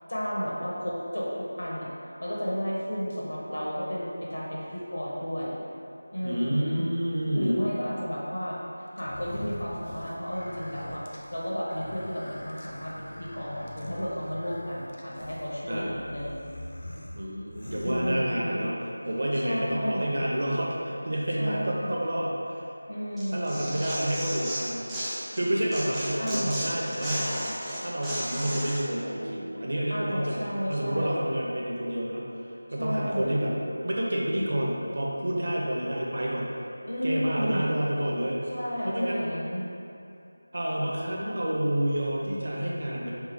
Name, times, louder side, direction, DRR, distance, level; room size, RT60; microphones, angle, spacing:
voice 1, 0.1-1.9 2.2-5.6 6.1-6.8 7.3-8.6 9.0-11.0 11.3-16.5 17.8-18.7 19.3-20.2 21.4-22.1 22.9-23.8 26.2-26.7 29.9-31.3 32.8-33.4 36.9-37.8 38.5-39.8, equal, 80° left, -5 dB, 1.1 m, -32 dB
voice 2, 6.2-7.6 15.7-15.9 17.2-22.7 23.3-24.9 25.3-27.3 27.8-32.3 32.7-33.5 33.8-36.5 37.0-38.5 38.8-39.3 40.5-43.1, right 1 dB, 55° right, -3 dB, 0.7 m, -29 dB
sound 1, 9.0-18.7, left 1 dB, 60° left, 0.5 m, -43 dB
Tearing, 23.2-25.4 25.7-28.8, equal, 5° right, 0.3 m, -34 dB
3.5 x 3.2 x 3.5 m, 2.6 s
figure-of-eight pair, 175°, 0 cm